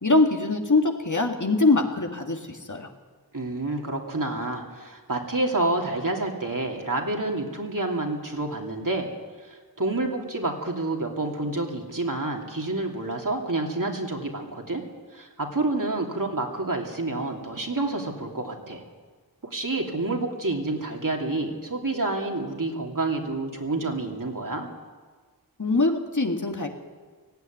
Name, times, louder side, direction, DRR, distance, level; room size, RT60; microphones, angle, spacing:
voice 1, 0.0-2.9 25.6-26.7, left 3 dB, 50° left, 3 dB, 2.0 m, -23 dB
voice 2, 3.3-9.1 9.4-14.8 15.1-18.8 19.4-24.7, right 2 dB, 55° right, 1 dB, 3.0 m, -28 dB
18.0 x 16.0 x 9.4 m, 1.5 s
wide cardioid pair, 45°, 38 cm